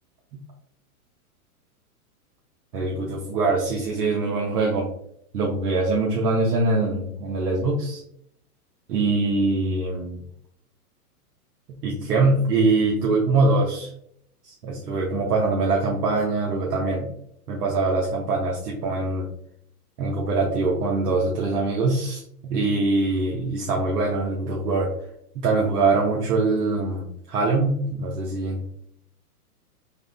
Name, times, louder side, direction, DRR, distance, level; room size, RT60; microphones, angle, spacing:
voice 1, 2.7-4.9 5.3-8.0 8.9-10.2 11.8-13.9 14.4-17.1 17.5-19.3 20.0-24.9 25.4-28.6, right 3 dB, 85° right, -2 dB, 0.7 m, -23 dB
3.5 x 2.0 x 2.2 m, 0.71 s
hypercardioid pair, 125°, 47 cm